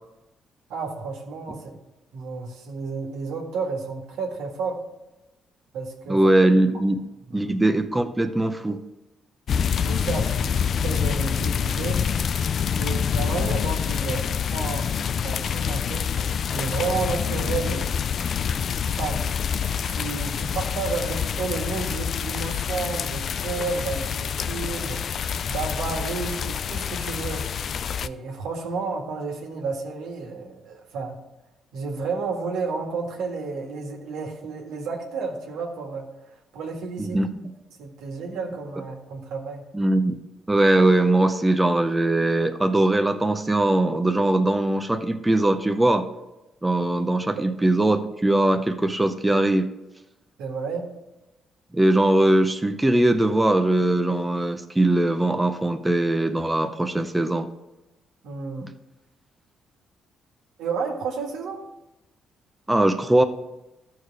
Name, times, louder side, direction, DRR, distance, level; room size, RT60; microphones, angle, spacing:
voice 1, 0.7-1.7 2.1-4.8 5.7-6.3 7.3-7.5 9.8-10.6 10.8-12.0 12.7-14.9 15.2-18.1 18.8-19.2 19.9-25.0 25.4-27.4 28.0-31.2 31.7-36.1 36.5-37.2 37.8-39.6 50.4-50.8 58.2-58.7 60.6-61.6, right 4 dB, 90° right, 1 dB, 1.7 m, -31 dB
voice 2, 6.1-7.1 7.3-8.8 37.0-37.3 39.7-40.2 40.5-46.1 46.6-49.7 51.7-57.5 62.7-63.2, right 1 dB, 10° right, 7 dB, 0.6 m, -21 dB
sound 1, 9.5-28.1, left 7 dB, 55° left, 0.3 m, -26 dB
13.5 x 4.7 x 4.7 m, 0.99 s
cardioid pair, 90°, 0 cm